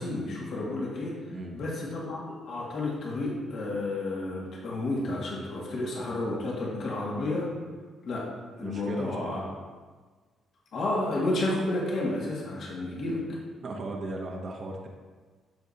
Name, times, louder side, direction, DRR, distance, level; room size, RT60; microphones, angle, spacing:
voice 1, 0.0-1.1 1.5-7.5 8.0-8.2 8.6-9.4 10.7-13.2, left 2 dB, 60° left, -4 dB, 2.1 m, -31 dB
voice 2, 8.6-9.4 13.6-14.9, right 2 dB, 45° right, 0 dB, 1.0 m, -36 dB
13.5 x 5.0 x 2.8 m, 1.4 s
cardioid pair, 125°, 0 cm